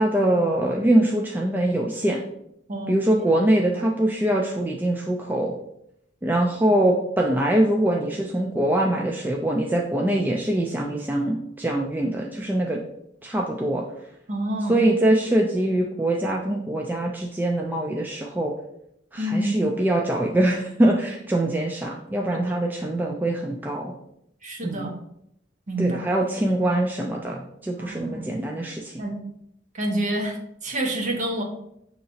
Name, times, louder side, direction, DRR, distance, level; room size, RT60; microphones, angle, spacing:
voice 1, 0.0-2.2 2.9-5.6 6.2-12.8 13.2-13.8 14.7-18.5 19.1-23.9 24.6-24.9 25.8-29.0, right 1 dB, 10° right, 0 dB, 0.3 m, -23 dB
voice 2, 2.7-3.4 3.7-3.9 14.3-14.9 19.2-19.6 22.3-22.6 24.4-24.9 25.7-26.1 27.8-28.2 29.0-29.1 29.7-31.4, right 1 dB, 40° right, 2 dB, 0.9 m, -28 dB
6.5 x 2.8 x 2.7 m, 0.76 s
head